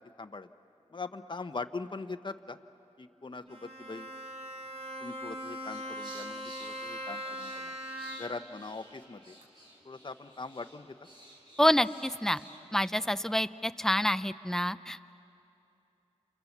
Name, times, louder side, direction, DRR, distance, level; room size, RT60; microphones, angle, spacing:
voice 1, 0.2-0.5 0.9-2.6 3.0-4.1 5.0-7.8 8.2-9.4 9.8-11.0, left 3 dB, 40° left, 8 dB, 0.9 m, -41 dB
Bowed string instrument, 3.5-8.5, equal, 55° right, 2.9 m, -40 dB
sound 1, 5.7-13.0, equal, 40° right, 5.9 m, -53 dB
voice 2, 11.6-12.4 12.7-15.1, left 1 dB, 5° left, 12 dB, 0.6 m, -27 dB
29.0 x 28.5 x 7.3 m, 2.8 s
wide cardioid pair, 60°, 12 cm